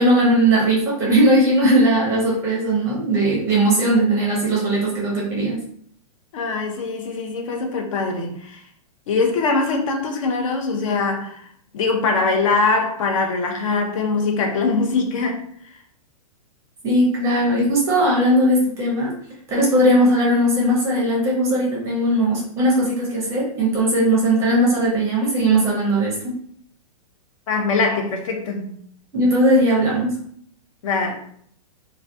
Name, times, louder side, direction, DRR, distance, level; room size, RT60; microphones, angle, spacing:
voice 1, 0.0-5.6 16.8-19.1 19.5-26.3 29.1-30.2, right 1 dB, 15° right, 0.5 m, -18 dB
voice 2, 6.3-8.6 9.1-11.4 11.7-15.4 27.5-28.8 30.8-31.1, left 4 dB, 55° left, 0.5 m, -22 dB
2.2 x 2.1 x 2.6 m
hypercardioid pair, 160°, 19 cm